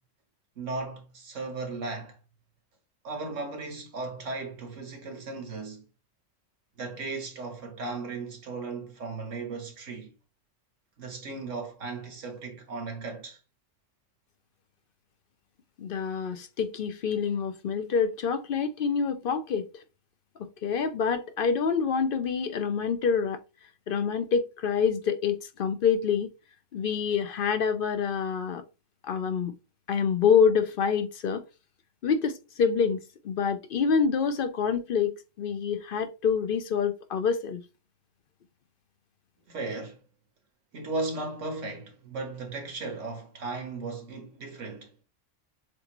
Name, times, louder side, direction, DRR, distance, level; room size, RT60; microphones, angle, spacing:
voice 1, 0.6-2.2 3.0-5.8 6.8-10.1 11.0-13.4 39.5-40.0 40.7-44.9, right 3 dB, 80° right, 1.6 m, -36 dB
voice 2, 15.8-19.7 20.4-23.4 23.9-26.3 26.7-28.6 29.0-29.5 29.9-31.4 32.0-33.0 33.2-37.6, left 6 dB, 60° left, 0.6 m, -26 dB
7.1 x 2.5 x 3.0 m
omnidirectional pair, 1.3 m